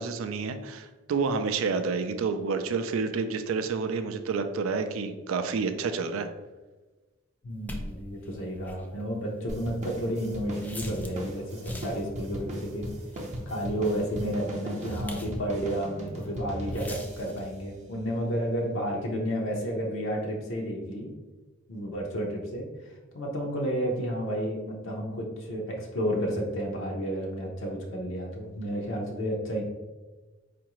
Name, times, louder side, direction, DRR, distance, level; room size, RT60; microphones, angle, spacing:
voice 1, 0.0-6.3, right 4 dB, 70° right, 9 dB, 0.3 m, -29 dB
voice 2, 7.4-12.9 13.5-21.1 21.7-29.6, equal, 70° left, -1 dB, 0.6 m, -31 dB
sound 1, 7.7-11.2 11.5-12.1 12.7-15.5 15.9-16.4 16.7-17.5, left 1 dB, 10° left, 0.4 m, -44 dB
sound 2, 9.5-18.3, right 1 dB, 35° right, 0.6 m, -38 dB
4.6 x 2.5 x 2.9 m, 1.2 s
head